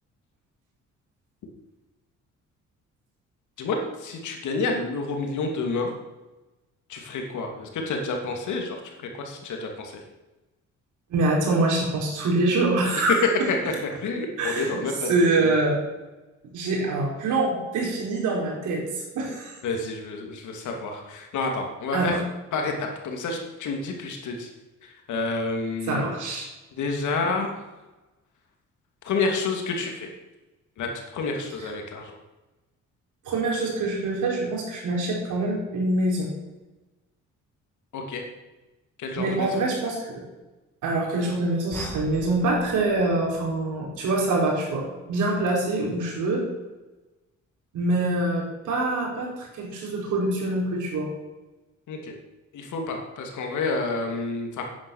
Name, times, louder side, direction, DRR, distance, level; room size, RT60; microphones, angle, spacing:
voice 1, 3.6-5.9 6.9-10.0 13.5-13.6 14.0-15.5 19.6-22.2 22.5-24.5 24.8-26.1 26.7-27.5 29.0-30.1 30.8-32.1 37.9-38.2 39.0-39.6 51.9-52.2 52.5-54.6, left 3 dB, 75° left, 2 dB, 2.7 m, -29 dB
voice 2, 11.1-13.2 14.4-14.8 15.1-15.8 16.5-19.6 21.9-22.2 25.9-26.5 33.2-36.3 39.2-40.2 40.8-46.4 47.7-51.1, right 2 dB, 80° right, -2 dB, 4.7 m, -25 dB
sound 1, 41.7-44.1, equal, 5° left, 2.4 m, -42 dB
9.9 x 9.8 x 6.5 m, 1.1 s
cardioid pair, 90°, 30 cm